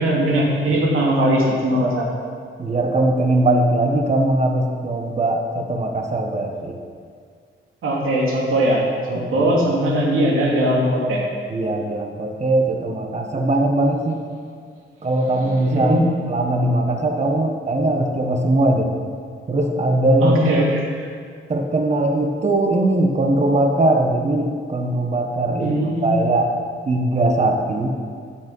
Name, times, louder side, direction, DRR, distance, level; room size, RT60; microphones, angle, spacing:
voice 1, 0.0-2.1 7.8-8.8 9.1-11.2 15.7-16.0 20.2-20.8 25.6-26.3, right 1 dB, 75° right, -3 dB, 2.9 m, -19 dB
voice 2, 2.6-6.8 9.1-9.5 11.5-14.2 15.0-16.0 16.3-18.9 19.5-20.3 21.5-25.7 26.0-26.5 26.9-27.9, right 2 dB, 30° right, 3 dB, 1.3 m, -20 dB
13.0 x 8.5 x 5.5 m, 2.1 s
wide cardioid pair, 135°, 21 cm